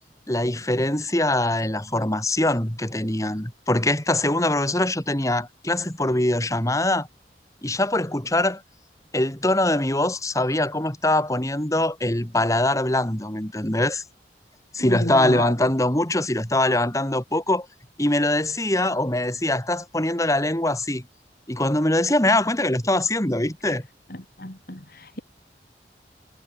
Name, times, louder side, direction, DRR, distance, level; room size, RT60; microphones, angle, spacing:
voice 1, 0.3-7.1 7.6-8.6 9.1-14.0 14.7-17.7 18.0-21.0 21.5-23.8, left 1 dB, 20° left, 2.6 m, -23 dB
voice 2, 14.8-15.5 24.4-25.2, left 1 dB, 55° left, 3.6 m, -31 dB
head